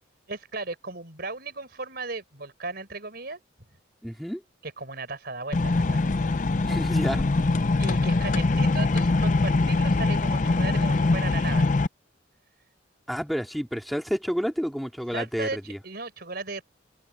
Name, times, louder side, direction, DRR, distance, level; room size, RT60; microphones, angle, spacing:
voice 1, 0.3-3.4 4.6-6.0 7.8-11.7 15.1-15.6 15.8-16.6, right 3 dB, 50° right, 4.2 m, -36 dB
voice 2, 4.0-4.4 6.6-7.2 13.1-15.8, equal, ahead, 2.3 m, -30 dB
sound 1, 5.5-11.9, left 3 dB, 40° left, 0.5 m, -23 dB
open air
head